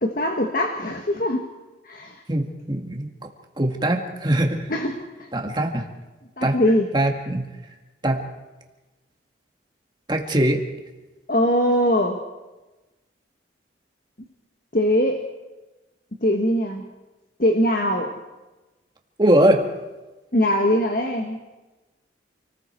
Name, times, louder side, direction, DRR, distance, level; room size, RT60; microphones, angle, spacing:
voice 1, 0.0-1.4 1.8-2.2 4.7-5.3 6.4-6.9 11.3-12.2 14.7-15.2 16.2-16.9 17.4-18.2 20.3-21.4, left 1 dB, 45° left, 4 dB, 1.5 m, -21 dB
voice 2, 2.3-3.1 3.6-4.7 5.3-5.9 6.4-6.6 6.9-7.5 8.0-8.2 10.1-10.7 19.2-19.7, right 1 dB, 25° right, 2 dB, 2.0 m, -21 dB
29.0 x 19.5 x 4.6 m, 1.1 s
head